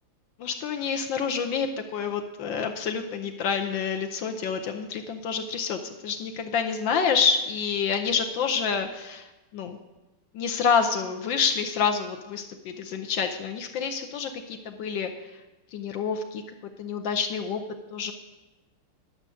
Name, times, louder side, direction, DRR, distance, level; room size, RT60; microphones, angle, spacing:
voice 1, 0.4-9.8 10.3-15.1 15.7-16.4 16.8-17.6 17.9-18.1, left 6 dB, 70° left, 5 dB, 1.4 m, -28 dB
11.0 x 6.6 x 6.3 m, 1.1 s
omnidirectional pair, 2.4 m